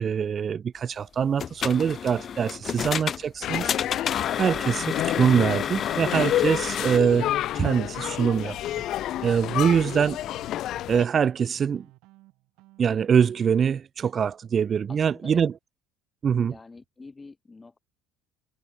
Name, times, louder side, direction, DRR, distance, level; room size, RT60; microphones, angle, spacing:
voice 1, 0.0-3.7 4.4-8.6 9.2-10.2 10.9-11.8 12.8-15.5 16.2-16.5, right 7 dB, 40° right, 0.6 m, -24 dB
sound 1, 1.2-7.0, left 8 dB, 40° left, 0.5 m, -31 dB
sound 2, 3.4-11.0, left 13 dB, 60° left, 0.9 m, -29 dB
sound 3, 7.3-13.7, right 21 dB, 70° right, 2.9 m, -55 dB
voice 2, 14.9-15.5 16.5-17.8, left 3 dB, 20° left, 4.5 m, -47 dB
supercardioid pair, 85°, 0 cm